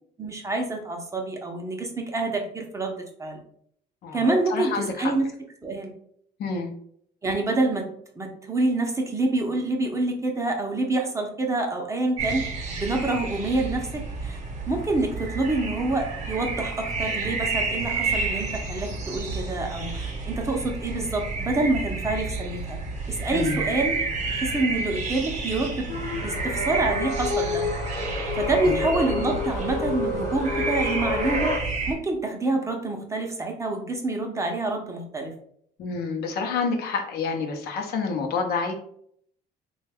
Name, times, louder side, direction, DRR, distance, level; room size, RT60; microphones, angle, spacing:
voice 1, 0.2-2.9 3.2-3.4 4.1-5.3 5.6-5.9 7.2-7.9 8.2-12.4 12.8-14.4 14.7-22.8 23.1-24.0 24.3-25.9 26.2-27.7 28.3-31.6 31.9-35.3, right 2 dB, 15° right, 2 dB, 0.6 m, -27 dB
voice 2, 4.0-5.1 6.4-6.7 23.3-23.6 28.6-28.8 35.8-38.7, left 4 dB, 70° left, 3 dB, 0.7 m, -28 dB
sound 1, 12.2-31.9, right 3 dB, 45° right, 0.9 m, -30 dB
sound 2, 25.9-31.6, left 2 dB, 20° left, 0.8 m, -29 dB
3.3 x 2.3 x 3.4 m, 0.65 s
cardioid pair, 110°, 17 cm